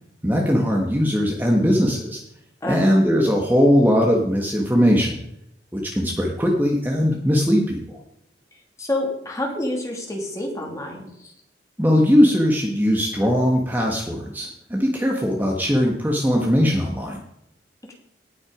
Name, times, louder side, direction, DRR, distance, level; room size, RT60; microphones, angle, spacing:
voice 1, 0.2-2.2 2.7-5.2 5.7-8.0 11.8-17.2, equal, 10° right, 0 dB, 1.4 m, -20 dB
voice 2, 2.6-2.9 8.8-11.3, left 1 dB, 20° left, 0 dB, 2.7 m, -28 dB
18.0 x 6.2 x 5.0 m, 0.77 s
head